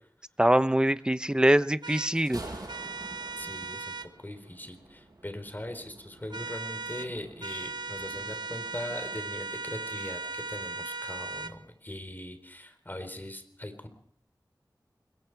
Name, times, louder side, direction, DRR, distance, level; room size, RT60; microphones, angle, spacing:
voice 1, 0.4-2.4, right 1 dB, 10° right, 13 dB, 0.8 m, -23 dB
sound 1, 1.8-2.1 2.7-4.1 6.3-7.1 7.4-11.6, right 4 dB, 90° right, 0.9 m, -37 dB
Thunder, 2.0-9.2, right 2 dB, 60° right, 7.6 m, -48 dB
voice 2, 3.4-13.9, left 1 dB, 25° left, 8 dB, 3.9 m, -40 dB
26.0 x 22.5 x 4.7 m, 0.68 s
wide cardioid pair, 60°, 7 cm